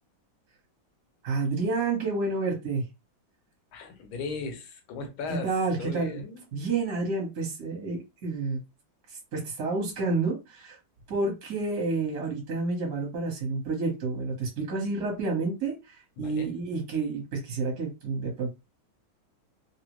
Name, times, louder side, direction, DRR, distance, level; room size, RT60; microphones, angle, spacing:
voice 1, 1.2-2.8 5.4-6.2 6.5-8.6 9.3-10.8 11.1-18.5, right 3 dB, 50° right, 1.3 m, -29 dB
voice 2, 3.7-5.5 5.8-6.4 16.2-16.6, left 4 dB, 90° left, 1.6 m, -37 dB
3.7 x 2.1 x 2.9 m
omnidirectional pair, 2.2 m